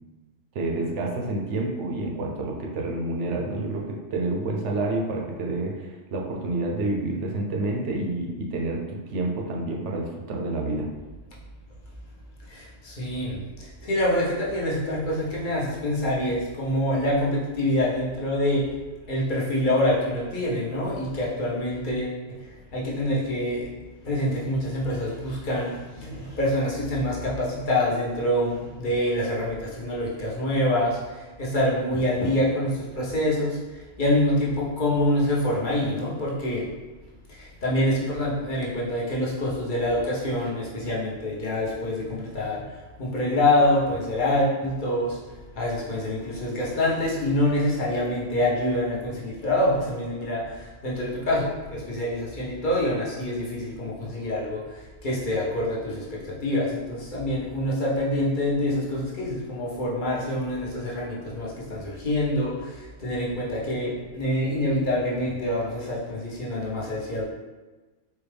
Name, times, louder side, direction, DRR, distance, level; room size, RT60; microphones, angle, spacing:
voice 1, 0.5-10.9, right 2 dB, 70° right, 0 dB, 0.9 m, -28 dB
voice 2, 12.5-13.4 13.8-18.6 19.1-22.1 22.7-23.6 24.0-31.0 31.4-33.6 34.0-36.7 37.6-42.6 43.0-45.2 45.6-50.4 50.8-54.6 55.0-56.0 56.4-62.5 63.0-67.2, left 1 dB, 45° left, -6 dB, 0.9 m, -26 dB
4.4 x 2.3 x 3.3 m, 1.2 s
omnidirectional pair, 1.3 m